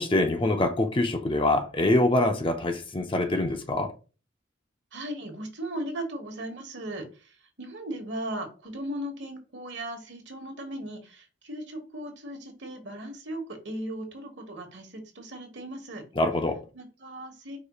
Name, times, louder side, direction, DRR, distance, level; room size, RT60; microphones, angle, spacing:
voice 1, 0.0-3.9 16.2-16.6, left 2 dB, 25° left, 0.5 m, -24 dB
voice 2, 4.9-16.0 16.7-17.6, right 1 dB, 60° right, 1.3 m, -37 dB
4.9 x 4.2 x 2.4 m
head